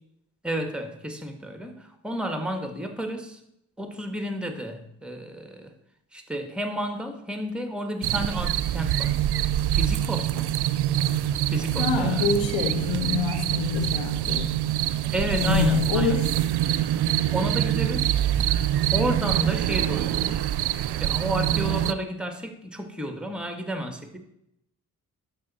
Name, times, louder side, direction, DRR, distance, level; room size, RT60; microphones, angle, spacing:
voice 1, 0.4-3.4 3.8-5.7 6.1-9.2 9.7-10.5 11.5-12.4 15.1-16.2 17.3-18.2 18.9-20.6 21.0-24.2, equal, ahead, 6 dB, 1.6 m, -31 dB
sound 1, 8.0-21.9, right 12 dB, 65° right, 0.5 m, -25 dB
voice 2, 11.8-14.5 15.3-16.3, left 7 dB, 85° left, 8 dB, 1.1 m, -26 dB
12.0 x 5.3 x 4.2 m, 0.78 s
supercardioid pair, 40°, 43 cm